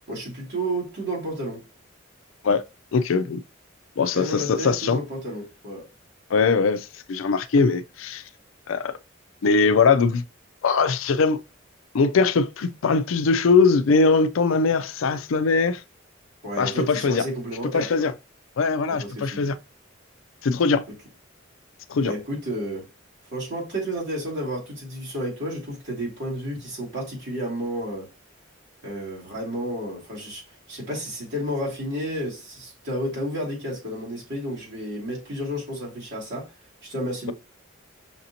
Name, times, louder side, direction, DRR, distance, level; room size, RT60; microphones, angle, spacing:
voice 1, 0.1-1.6 4.1-5.9 16.4-18.1 18.9-19.5 22.0-22.9 23.3-28.1 28.8-30.4 30.7-36.5 36.8-37.3, equal, 60° right, 2.5 m, -31 dB
voice 2, 2.9-3.4 4.0-5.0 6.3-8.2 8.7-8.9 9.4-10.2 10.6-11.4 11.9-15.8 16.6-17.3 17.7-18.1 18.6-19.6 20.4-20.8 21.9-22.1, left 4 dB, 90° left, 0.4 m, -21 dB
5.8 x 2.6 x 2.8 m
head